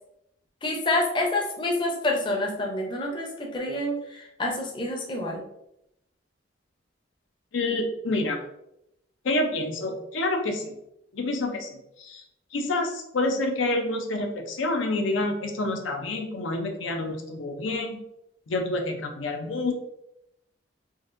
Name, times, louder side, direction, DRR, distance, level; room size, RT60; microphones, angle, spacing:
voice 1, 0.6-5.4, left 1 dB, 25° left, 0 dB, 0.5 m, -28 dB
voice 2, 7.5-8.4 9.2-10.7 11.1-12.2 12.5-18.0 18.5-19.7, left 2 dB, 85° left, 4 dB, 0.5 m, -28 dB
3.9 x 2.5 x 2.5 m, 0.81 s
head